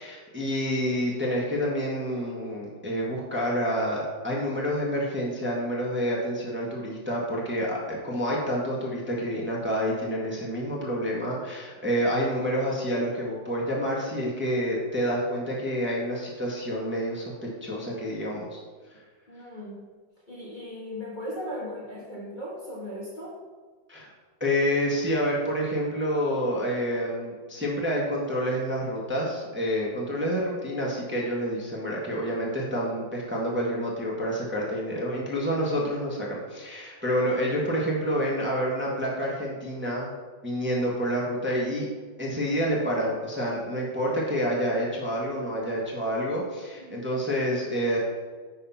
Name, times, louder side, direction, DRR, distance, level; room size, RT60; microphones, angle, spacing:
voice 1, 0.0-17.3 17.6-18.6 23.9-24.1 24.4-40.1 40.4-41.9 42.2-48.0, equal, 5° right, -4 dB, 1.4 m, -28 dB
voice 2, 19.3-19.8 20.3-23.4 46.8-47.0, equal, 25° left, -5 dB, 1.5 m, -37 dB
10.5 x 4.1 x 5.7 m, 1.4 s
omnidirectional pair, 2.0 m